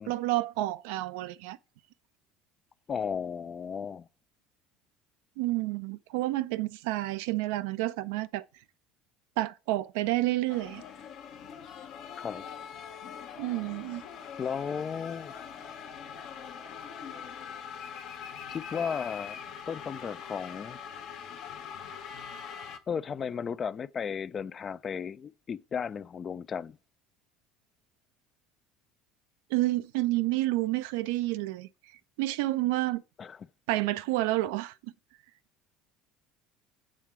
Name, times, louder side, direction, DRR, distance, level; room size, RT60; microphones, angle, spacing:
voice 1, 0.1-1.6 5.4-8.4 9.4-10.8 13.4-14.0 29.5-31.7 32.2-33.0 33.7-34.9, right 17 dB, 70° right, 0.3 m, -29 dB
voice 2, 2.9-4.1 12.2-12.5 14.4-15.3 18.5-19.4 19.7-20.8 22.9-26.8 33.2-33.4, left 7 dB, 35° left, 0.3 m, -34 dB
sound 1, 10.5-22.8, left 7 dB, 55° left, 0.8 m, -43 dB
7.6 x 3.6 x 4.5 m
hypercardioid pair, 65°, 0 cm